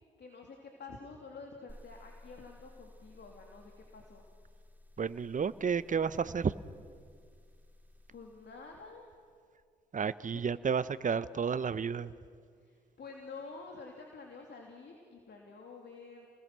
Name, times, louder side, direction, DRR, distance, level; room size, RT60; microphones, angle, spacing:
voice 1, 0.2-4.2 8.1-9.1 10.3-10.4 12.6-16.3, left 4 dB, 55° left, 1 dB, 2.9 m, -49 dB
sound 1, 1.7-9.5, left 1 dB, 10° right, 2.5 m, -57 dB
voice 2, 5.0-6.5 9.9-12.1, right 6 dB, 40° right, 15 dB, 0.9 m, -31 dB
30.0 x 20.5 x 6.2 m, 2.1 s
hypercardioid pair, 40°, 21 cm